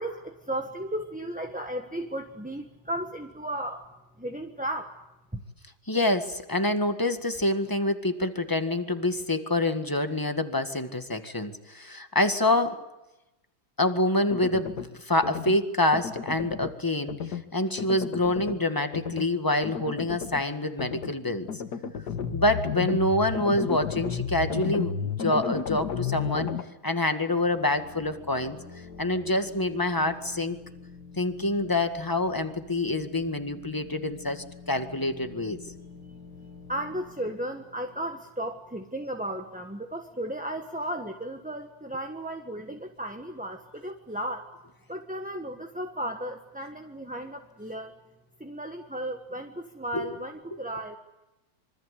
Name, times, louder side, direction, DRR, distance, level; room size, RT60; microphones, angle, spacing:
voice 1, 0.0-3.9 4.2-5.0 5.3-5.4 36.1-36.2 36.7-44.5 44.9-48.0 48.4-51.0, right 1 dB, 5° right, 3 dB, 1.2 m, -35 dB
voice 2, 5.9-12.7 13.8-21.5 22.3-26.5 26.8-28.6 29.0-30.6 31.2-35.6 49.9-50.1, left 1 dB, 10° left, 8 dB, 1.6 m, -26 dB
sound 1, 14.3-14.9 15.2-15.6 15.9-16.7 17.1-17.4 17.8-18.6 18.9-19.3 19.6-20.4 20.8-21.1 21.5-26.6, left 7 dB, 60° left, 1.9 m, -32 dB
sound 2, 27.2-38.7, left 5 dB, 85° left, 3.9 m, -48 dB
26.5 x 24.5 x 8.4 m, 0.96 s
omnidirectional pair, 2.1 m